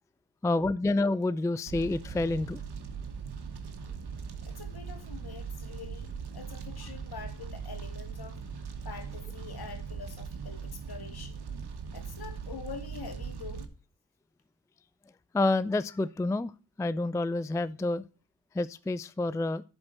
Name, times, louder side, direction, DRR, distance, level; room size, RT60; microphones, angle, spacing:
voice 1, 0.4-2.6 15.3-16.5 16.8-18.0 18.5-19.6, left 2 dB, 10° left, 0.4 m, -28 dB
Fire, 1.7-13.6, right 6 dB, 65° right, 1.3 m, -40 dB
voice 2, 4.4-8.4 8.8-11.4 11.9-13.7, left 6 dB, 60° left, 2.1 m, -45 dB
10.5 x 4.4 x 6.4 m
supercardioid pair, 45°, 41 cm